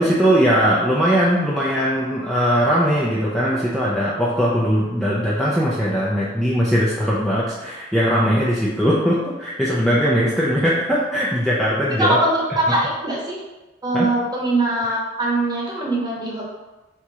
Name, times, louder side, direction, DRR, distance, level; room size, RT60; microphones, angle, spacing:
voice 1, 0.0-12.2 13.9-14.1, equal, ahead, -7 dB, 0.5 m, -20 dB
voice 2, 12.0-13.4 13.8-16.5, right 2 dB, 20° right, -4 dB, 1.0 m, -21 dB
3.6 x 2.8 x 4.8 m, 1.1 s
head